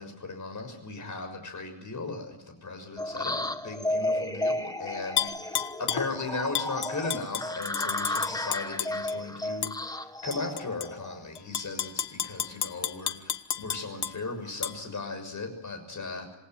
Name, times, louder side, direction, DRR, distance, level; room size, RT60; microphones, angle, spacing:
voice 1, 0.0-16.4, left 3 dB, 40° left, 6 dB, 6.5 m, -37 dB
sound 1, 3.0-11.4, left 1 dB, 10° left, 1.2 m, -33 dB
Tap / Glass, 5.2-6.1 6.5-9.2 9.6-9.8 10.3-10.9 11.4-14.1 14.6-14.7, left 9 dB, 60° left, 1.3 m, -31 dB
27.5 x 18.5 x 9.5 m, 0.89 s
wide cardioid pair, 135°, 45 cm